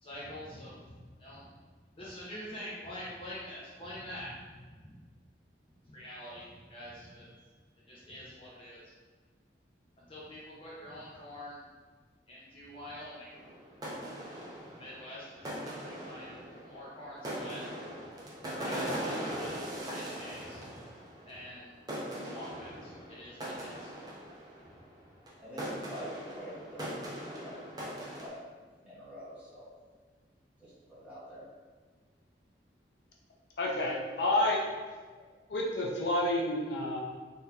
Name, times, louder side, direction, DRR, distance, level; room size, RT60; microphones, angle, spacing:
voice 1, 0.0-1.5 2.0-4.9 5.8-7.4 7.9-8.9 10.1-11.6 12.3-13.4 14.7-17.6 18.4-20.8 21.2-21.7 22.2-23.9 24.6-24.7, left 1 dB, 30° left, -7 dB, 0.7 m, -46 dB
sound 1, 13.3-21.6 21.9-24.8 25.3-25.4 25.6-28.3, right 1 dB, 20° right, 0.5 m, -40 dB
voice 2, 25.4-28.4 28.8-29.7 30.6-31.4, equal, 5° right, -11 dB, 1.3 m, -46 dB
voice 3, 33.6-34.6 35.5-37.0, left 1 dB, 75° left, -2 dB, 0.5 m, -29 dB
3.9 x 2.5 x 2.7 m, 1.4 s
head